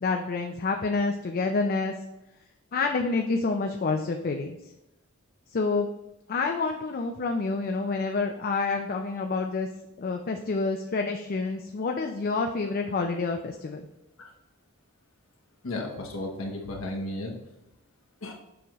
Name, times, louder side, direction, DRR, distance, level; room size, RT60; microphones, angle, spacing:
voice 1, 0.0-1.9 2.7-4.6 5.5-5.9 6.3-9.7 10.0-13.8, left 3 dB, 45° left, 4 dB, 0.4 m, -28 dB
voice 2, 15.6-17.3 18.2-18.3, left 2 dB, 65° left, 0 dB, 1.0 m, -34 dB
7.0 x 4.8 x 3.0 m, 0.94 s
head